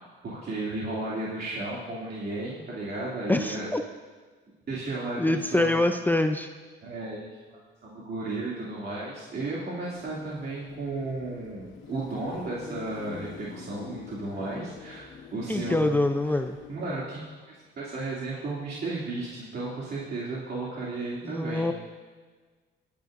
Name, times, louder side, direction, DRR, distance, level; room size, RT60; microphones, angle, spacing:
voice 1, 0.2-3.7 4.7-5.8 6.8-7.4 7.8-15.9 16.7-21.7, right 2 dB, 55° right, -7 dB, 2.8 m, -34 dB
voice 2, 3.3-3.8 5.2-6.5 15.5-16.6 21.2-21.7, left 1 dB, 10° left, 6 dB, 0.6 m, -25 dB
Car passing by / Traffic noise roadway noise / Engine, 9.9-17.3, left 5 dB, 80° left, 2.3 m, -45 dB
27.0 x 9.6 x 2.6 m, 1.4 s
cardioid pair, 90°, 20 cm